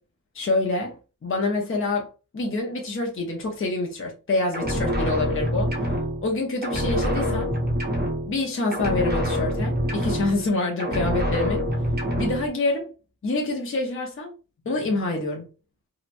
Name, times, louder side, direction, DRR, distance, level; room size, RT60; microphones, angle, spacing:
voice 1, 0.3-1.0 1.2-5.7 6.2-7.5 8.3-11.7 12.1-12.9 13.2-14.3 14.6-15.4, left 2 dB, 35° left, 0.7 m, -26 dB
sound 1, 4.5-6.4 6.6-8.5 8.7-10.5 10.8-12.5, equal, 25° right, 0.7 m, -26 dB
2.9 x 2.1 x 2.6 m
wide cardioid pair, 75°, 36 cm